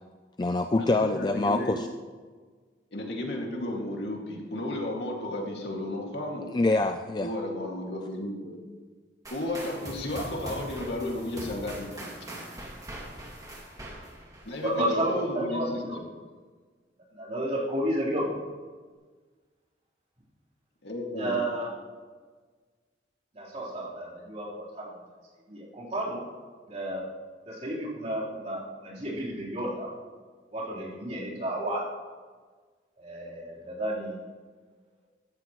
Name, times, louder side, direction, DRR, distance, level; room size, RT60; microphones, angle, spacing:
voice 1, 0.4-1.9 6.5-7.3, left 2 dB, 25° left, 7 dB, 0.4 m, -25 dB
voice 2, 1.0-1.8 2.9-6.6 7.2-8.5 9.3-12.4 14.5-15.8 20.8-21.4, left 1 dB, 70° left, 0 dB, 2.3 m, -33 dB
sound 1, 9.2-15.1, right 1 dB, 20° right, 2.3 m, -42 dB
voice 3, 14.6-16.0 17.1-18.4 21.2-21.7 23.3-24.9 25.5-26.2 26.7-27.1 27.5-29.9 30.5-31.9 33.0-34.2, right 1 dB, 40° right, -7 dB, 3.9 m, -32 dB
15.0 x 13.5 x 3.1 m, 1.5 s
head